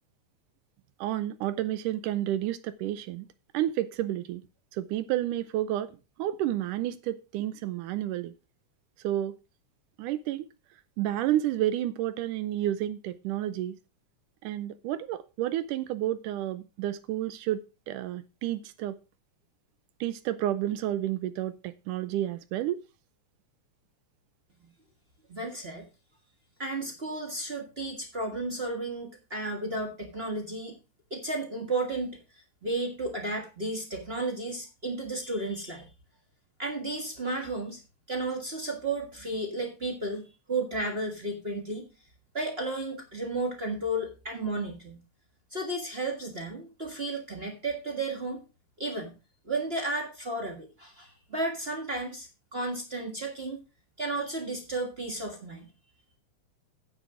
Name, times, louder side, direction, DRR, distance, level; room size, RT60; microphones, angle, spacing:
voice 1, 1.0-3.3 3.5-4.4 4.7-5.9 6.2-8.3 9.0-9.4 10.0-10.5 11.0-13.8 14.4-19.0 20.0-22.8, right 13 dB, 85° right, 2.3 m, -30 dB
voice 2, 25.3-25.9 26.6-30.8 31.1-32.2 32.6-35.9 36.6-37.8 38.1-41.9 42.3-45.0 45.5-48.4 48.8-49.2 49.4-53.6 54.0-55.7, right 2 dB, 35° right, 1.0 m, -33 dB
9.3 x 7.0 x 5.0 m
omnidirectional pair, 3.7 m